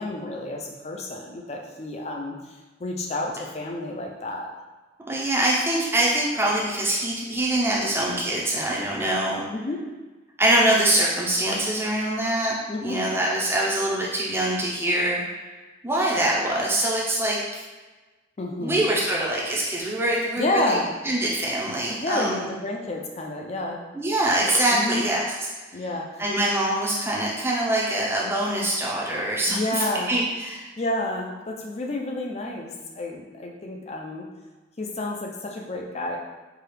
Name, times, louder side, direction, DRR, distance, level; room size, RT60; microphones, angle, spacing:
voice 1, 0.0-4.5 9.5-9.8 12.7-13.0 18.4-18.8 20.4-20.9 22.0-23.8 24.7-25.1 25.7-26.2 29.5-30.1 30.8-34.3 34.8-36.2, left 2 dB, 30° left, 1 dB, 0.4 m, -30 dB
voice 2, 5.1-9.4 10.4-12.5 12.8-15.2 15.8-17.4 18.6-22.4 23.9-25.3 25.7-25.8 26.2-30.6, right 1 dB, 10° right, -4 dB, 0.6 m, -24 dB
4.6 x 2.4 x 3.3 m, 1.2 s
head